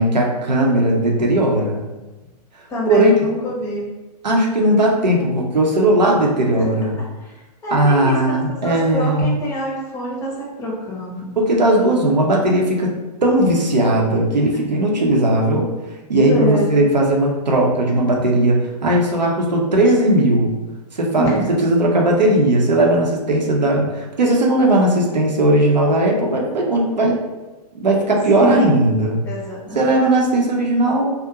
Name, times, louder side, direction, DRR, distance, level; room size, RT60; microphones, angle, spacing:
voice 1, 0.0-1.9 2.9-3.3 4.2-7.0 7.7-9.3 11.4-13.0 13.2-15.7 16.1-20.5 20.9-27.2 27.7-29.2 29.7-31.1, right 1 dB, 90° right, -1 dB, 0.7 m, -17 dB
voice 2, 2.7-3.9 6.5-6.7 7.2-7.4 7.6-8.3 8.6-11.4 16.3-16.7 21.2-21.5 28.4-28.7 29.2-29.9, equal, 15° left, -5 dB, 0.6 m, -25 dB
2.4 x 2.1 x 2.8 m, 1.1 s
hypercardioid pair, 115°, 21 cm